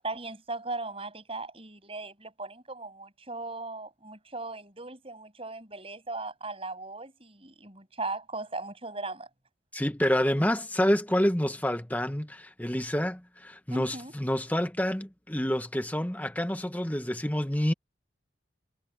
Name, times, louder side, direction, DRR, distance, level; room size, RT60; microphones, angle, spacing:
voice 1, 0.0-9.3 13.7-14.1, right 3 dB, 30° right, 7.5 m, -38 dB
voice 2, 9.7-17.7, equal, 10° left, 1.1 m, -28 dB
head